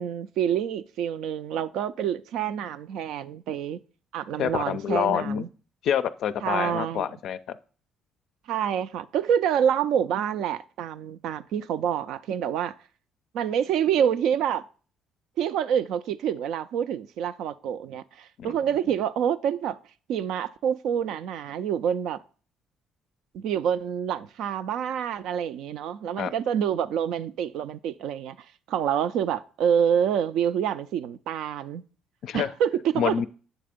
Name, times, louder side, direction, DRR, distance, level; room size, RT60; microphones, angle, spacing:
voice 1, 0.0-3.8 4.1-5.5 6.4-7.1 8.5-12.7 13.3-14.7 15.4-19.8 20.1-22.2 23.3-28.4 28.7-31.8 32.3-33.2, right 9 dB, 75° right, 0.3 m, -27 dB
voice 2, 4.4-5.4 5.8-7.4 18.4-18.6 26.2-26.3 32.2-32.5 33.0-33.3, left 9 dB, 70° left, 0.4 m, -27 dB
8.0 x 3.3 x 5.0 m
supercardioid pair, 70°, 0 cm